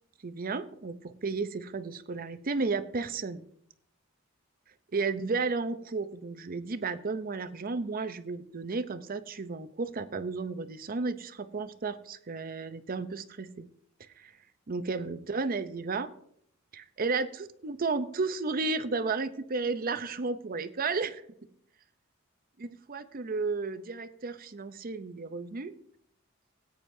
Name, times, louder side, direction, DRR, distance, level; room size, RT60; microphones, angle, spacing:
voice 1, 0.2-3.5 4.9-13.7 14.2-14.3 14.7-16.1 16.7-21.2 22.6-25.7, right 4 dB, 45° right, 11 dB, 0.6 m, -33 dB
18.5 x 9.2 x 2.7 m, 0.69 s
head